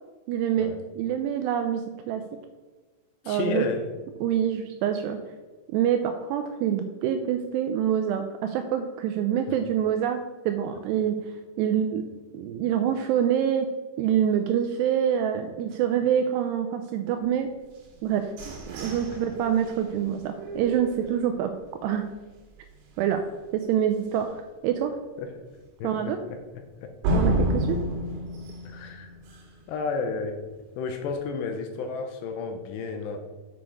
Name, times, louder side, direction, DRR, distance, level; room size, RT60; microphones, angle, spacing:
voice 1, 0.3-0.7 1.0-2.2 3.3-3.7 4.2-5.2 5.7-11.2 11.6-12.0 12.3-13.7 14.0-17.5 18.0-21.5 21.8-22.0 23.0-23.2 23.5-25.0 25.8-26.2 27.1-27.8, right 9 dB, 85° right, 6 dB, 2.4 m, -26 dB
voice 2, 3.2-3.9 25.2-25.3 25.8-26.2 26.8-26.9 28.7-29.1 29.7-30.4 30.8-33.2, left 4 dB, 80° left, 5 dB, 2.7 m, -31 dB
sound 1, 17.8-21.6 22.1-22.2 22.6-23.0 23.4-23.5 23.9-24.0 27.0-29.7, right 1 dB, 70° right, 3.6 m, -30 dB
8.2 x 6.2 x 4.7 m, 1.3 s
omnidirectional pair, 5.3 m